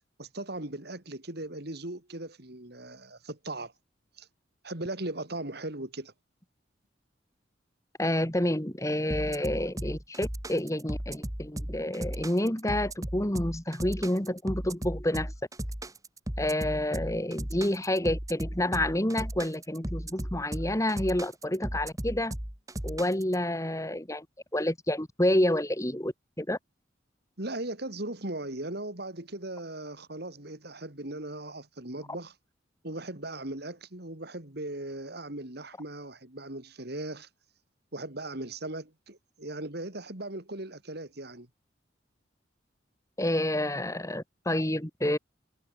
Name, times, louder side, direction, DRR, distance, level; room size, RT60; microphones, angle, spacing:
voice 1, 0.2-3.7 4.2-4.3 4.6-6.1 27.4-32.3 32.8-37.3 37.9-41.5, right 2 dB, 60° right, 3.3 m, -38 dB
voice 2, 8.0-15.3 16.4-22.3 22.8-24.3 24.5-26.6 43.2-45.2, left 1 dB, 15° left, 2.4 m, -29 dB
sound 1, 9.1-23.3, right 1 dB, 20° right, 2.4 m, -36 dB
head